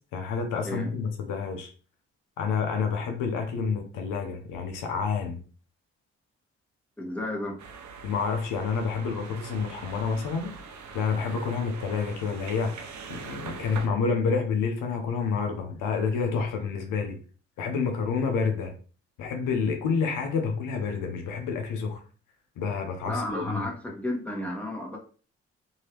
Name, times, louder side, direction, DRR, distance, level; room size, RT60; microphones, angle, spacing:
voice 1, 0.1-1.7 2.4-5.4 8.0-10.5 10.9-17.2 17.6-18.7 19.2-22.0 22.6-23.7, left 5 dB, 85° left, 4 dB, 0.7 m, -29 dB
voice 2, 7.0-7.6 23.0-25.0, left 1 dB, 5° left, -1 dB, 1.3 m, -32 dB
sound 1, 7.6-13.9, right 5 dB, 65° right, 0.7 m, -42 dB
3.0 x 2.7 x 2.8 m, 0.39 s
supercardioid pair, 50°, 31 cm